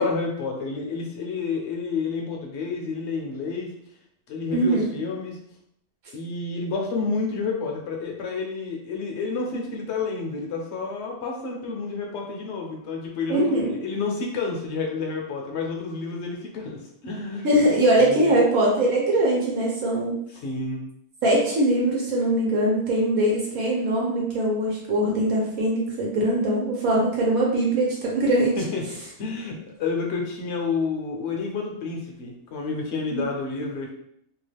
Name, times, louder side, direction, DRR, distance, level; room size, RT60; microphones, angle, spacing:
voice 1, 0.0-3.7 4.3-5.4 6.1-13.5 13.8-17.5 18.0-18.4 20.3-20.8 28.6-28.9 29.2-33.9, left 4 dB, 60° left, 0 dB, 0.9 m, -29 dB
voice 2, 4.5-4.9 13.3-13.8 17.4-20.1 21.2-28.5 33.1-33.2, right 1 dB, 75° right, -3 dB, 1.2 m, -22 dB
2.9 x 2.4 x 3.3 m, 0.71 s
omnidirectional pair, 1.5 m